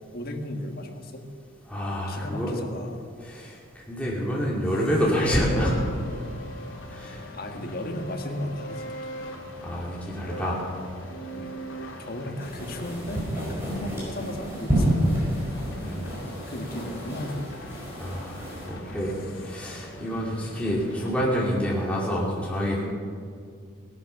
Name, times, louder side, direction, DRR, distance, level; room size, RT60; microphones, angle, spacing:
voice 1, 0.1-1.3 2.1-3.1 7.3-8.9 9.2-9.4 11.3-11.7 12.0-15.7 16.2-17.5, left 1 dB, 45° left, 3 dB, 1.5 m, -35 dB
voice 2, 1.7-2.5 3.2-3.5 3.9-5.7 6.9-7.2 9.6-10.6 15.8-16.1 18.0-18.4 18.7-19.1 19.4-22.8, equal, 5° left, -5 dB, 2.5 m, -27 dB
sound 1, 5.1-21.3, equal, 75° left, 2.5 m, -41 dB
sound 2, 12.4-18.7, right 1 dB, 10° right, 5.2 m, -29 dB
17.5 x 12.0 x 5.8 m, 2.2 s
head